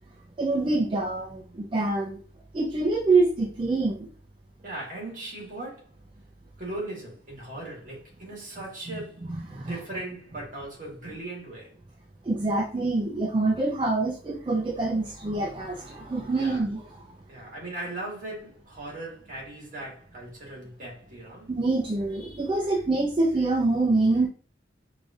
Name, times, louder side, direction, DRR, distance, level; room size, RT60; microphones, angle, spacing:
voice 1, 0.4-2.2 2.5-4.1 8.9-9.0 9.5-9.8 12.2-17.2 21.5-24.3, right 3 dB, 25° right, 0.4 m, -25 dB
voice 2, 4.6-5.9 6.6-11.7 16.3-16.6 17.3-21.5, right 2 dB, 45° right, 1.6 m, -38 dB
4.8 x 2.6 x 2.4 m
head